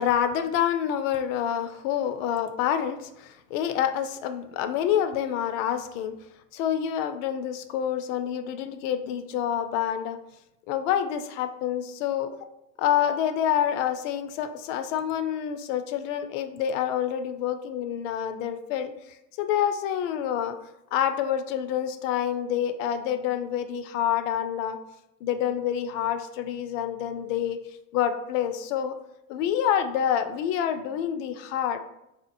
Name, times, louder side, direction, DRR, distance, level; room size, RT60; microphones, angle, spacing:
voice 1, 0.0-6.1 6.5-10.2 10.7-12.4 12.8-20.6 20.9-24.8 25.2-27.6 27.9-29.0 29.3-31.8, left 9 dB, 65° left, 9 dB, 0.5 m, -27 dB
3.5 x 2.8 x 2.5 m, 0.87 s
supercardioid pair, 135°, 41 cm